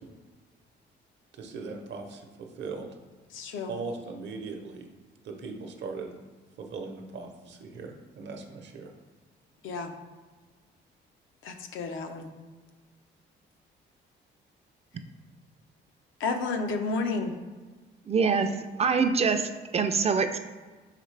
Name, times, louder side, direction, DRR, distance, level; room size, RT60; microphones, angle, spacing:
voice 1, 1.3-2.9 3.7-4.9 5.2-6.1 6.6-8.9, right 4 dB, 65° right, 3 dB, 0.7 m, -39 dB
voice 2, 3.3-3.7 9.6-9.9 11.4-12.3 16.2-17.3, left 3 dB, 80° left, 6 dB, 0.6 m, -31 dB
voice 3, 18.1-18.5 18.8-20.4, right 5 dB, 30° right, 9 dB, 0.4 m, -24 dB
4.9 x 3.1 x 3.2 m, 1.3 s
cardioid pair, 90°, 20 cm